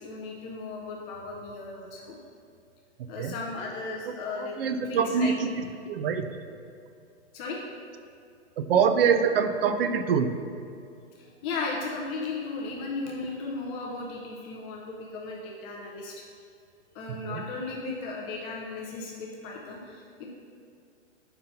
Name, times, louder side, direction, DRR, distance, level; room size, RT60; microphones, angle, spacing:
voice 1, 0.0-2.2 3.1-4.5 4.8-5.3 7.3-7.6 11.2-16.2 16.9-20.3, left 3 dB, 15° left, -2 dB, 0.4 m, -36 dB
voice 2, 4.4-6.3 8.6-10.3 17.1-17.4, right 6 dB, 55° right, 8 dB, 0.5 m, -25 dB
5.5 x 3.9 x 5.6 m, 2.5 s
hypercardioid pair, 125°, 35 cm